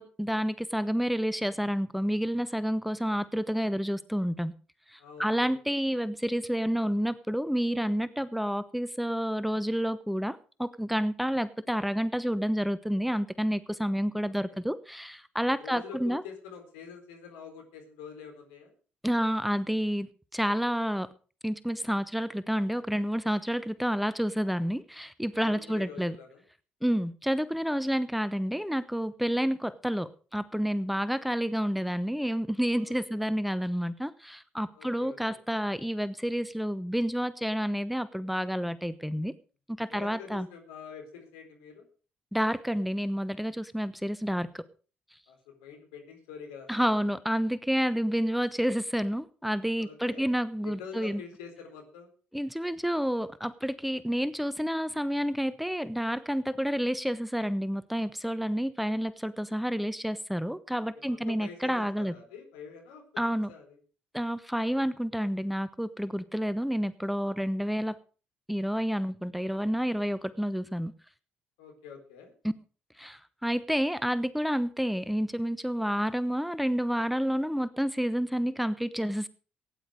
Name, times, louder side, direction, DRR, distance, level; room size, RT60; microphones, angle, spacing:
voice 1, 0.0-4.5 4.9-16.2 19.0-20.1 20.3-21.1 21.4-26.2 26.8-39.3 39.8-40.5 42.3-44.7 46.7-51.2 52.3-62.1 63.2-63.5 64.1-68.0 68.5-70.9 72.4-72.5 73.0-79.3, equal, ahead, 15 dB, 1.0 m, -29 dB
voice 2, 5.0-5.6 14.3-14.6 15.6-18.7 25.4-26.4 32.7-33.2 34.7-35.4 39.9-41.8 45.3-47.1 49.8-50.2 50.6-52.1 61.1-63.0 63.5-63.8 67.2-67.7 71.6-72.3, left 6 dB, 75° left, 3 dB, 4.1 m, -46 dB
16.5 x 10.0 x 5.0 m, 0.37 s
hypercardioid pair, 45°, 5 cm